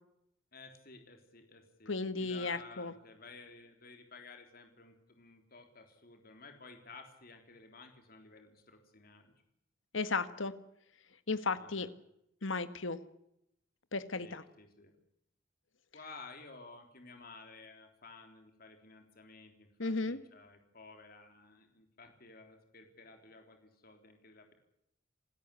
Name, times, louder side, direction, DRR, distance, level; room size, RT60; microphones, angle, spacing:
voice 1, 0.5-9.3 11.6-11.9 14.2-15.0 15.9-24.5, left 3 dB, 50° left, 5 dB, 3.6 m, -54 dB
voice 2, 1.9-2.9 9.9-10.5 11.3-11.9 12.4-13.0 13.9-14.4 19.8-20.2, left 3 dB, 80° left, 12 dB, 1.6 m, -34 dB
27.5 x 13.5 x 9.9 m, 0.80 s
head